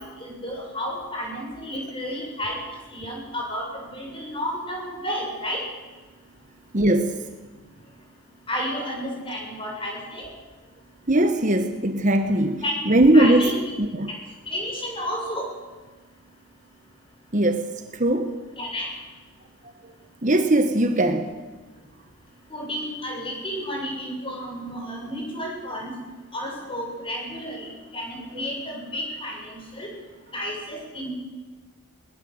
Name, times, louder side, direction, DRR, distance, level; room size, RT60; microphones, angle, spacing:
voice 1, 0.0-2.6 2.9-5.6 8.5-10.3 12.6-12.7 13.1-13.6 14.5-15.5 18.6-18.9 22.5-25.9 26.3-29.9 30.3-31.1, equal, 25° left, -1 dB, 7.2 m, -31 dB
voice 2, 6.7-7.2 11.1-13.5 13.8-14.1 17.3-18.3 20.2-21.3, right 1 dB, 35° right, 6 dB, 1.3 m, -20 dB
21.0 x 20.5 x 8.0 m, 1.3 s
head